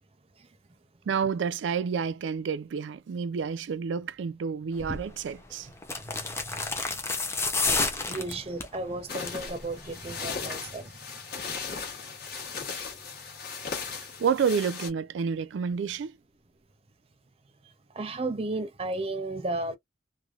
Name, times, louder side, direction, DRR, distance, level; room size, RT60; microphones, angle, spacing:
voice 1, 1.1-5.7 13.9-16.1, right 6 dB, 85° right, 0.3 m, -29 dB
sound 1, 4.8-5.1 5.8-8.8 9.1-9.5 9.8-9.9, left 3 dB, 15° left, 0.6 m, -29 dB
voice 2, 8.1-10.9 18.0-19.8, right 2 dB, 30° right, 0.5 m, -33 dB
sound 2, 9.1-14.9, left 5 dB, 55° left, 1.2 m, -37 dB
3.1 x 2.1 x 2.4 m
head